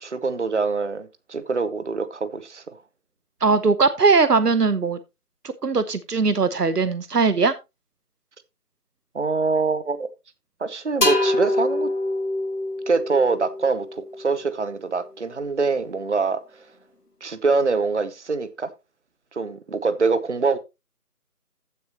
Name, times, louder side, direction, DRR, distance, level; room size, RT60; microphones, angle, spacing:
voice 1, 0.0-2.6 9.1-10.1 10.6-11.9 12.9-16.4 17.2-18.7 19.3-20.6, right 4 dB, 50° right, 0.8 m, -24 dB
voice 2, 3.4-5.0 5.6-7.5, right 4 dB, 85° right, 1.1 m, -19 dB
sound 1, 11.0-14.6, left 2 dB, 85° left, 3.1 m, -25 dB
15.0 x 6.5 x 2.9 m
figure-of-eight pair, 175°, 47 cm